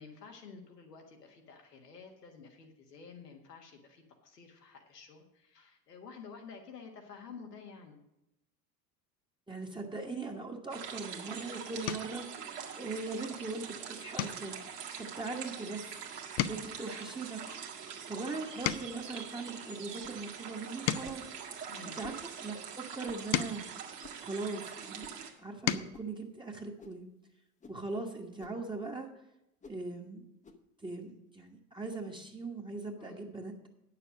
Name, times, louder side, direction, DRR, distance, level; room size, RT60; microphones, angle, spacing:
voice 1, 0.0-8.0 21.7-22.0 33.0-33.3, left 5 dB, 85° left, 3 dB, 1.6 m, -51 dB
voice 2, 9.5-14.7 15.0-15.9 16.5-17.4 18.1-21.3 21.8-23.7 24.2-25.1 25.4-27.1 27.7-29.1 29.7-30.3 30.8-33.7, right 3 dB, 10° right, 0 dB, 1.3 m, -40 dB
sound 1, 10.7-25.3, right 7 dB, 80° right, 1.6 m, -44 dB
sound 2, 11.0-11.3 11.8-12.2 12.7-13.1 13.4-13.6 14.1-16.0 16.2-19.2 19.8-22.3 22.9-24.8 25.3-26.0 27.4-27.5 27.8-28.0, left 11 dB, 50° left, 0.7 m, -38 dB
sound 3, 18.7-18.9 20.0-20.2 21.0-21.3 22.0-22.2 23.0-23.3 24.0-24.3 25.0-25.2 25.9-26.1 26.8-27.0 27.6-27.8 28.4-28.6 29.6-29.8 30.4-30.6, left 4 dB, 15° left, 0.9 m, -53 dB
9.4 x 6.8 x 6.2 m, 0.87 s
hypercardioid pair, 70°, 47 cm